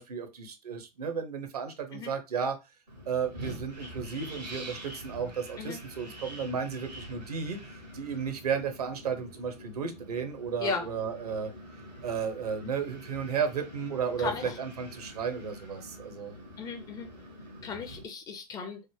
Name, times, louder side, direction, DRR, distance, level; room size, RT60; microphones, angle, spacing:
voice 1, 0.0-2.6 3.1-11.5 12.0-16.3, right 6 dB, 70° right, 0.7 m, -33 dB
Wind, 2.9-18.0, equal, 85° right, 1.1 m, -46 dB
voice 2, 14.2-14.6 16.6-17.1 17.6-18.8, left 5 dB, 20° left, 0.4 m, -35 dB
3.2 x 2.0 x 3.0 m
figure-of-eight pair, 100°, 21 cm